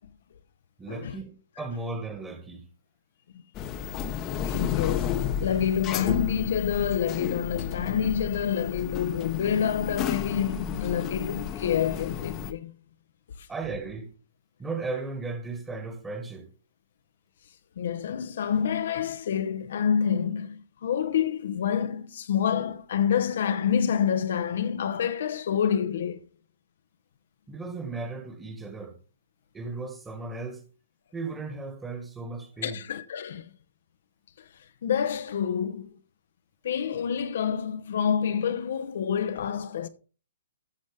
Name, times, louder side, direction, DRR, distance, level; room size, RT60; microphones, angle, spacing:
voice 1, 0.8-1.3 1.6-2.7 13.5-14.1 14.6-16.5 27.5-28.9 29.5-30.6 31.1-32.8, right 3 dB, 10° right, 1.6 m, -35 dB
sound 1, 3.5-12.5, left 8 dB, 25° left, 0.9 m, -32 dB
voice 2, 4.4-12.7 13.4-13.5 17.8-26.2 32.6-33.5 34.4-34.5 34.8-35.9 36.6-39.9, left 8 dB, 60° left, 0.7 m, -27 dB
13.0 x 6.2 x 3.4 m
hypercardioid pair, 130°, 0 cm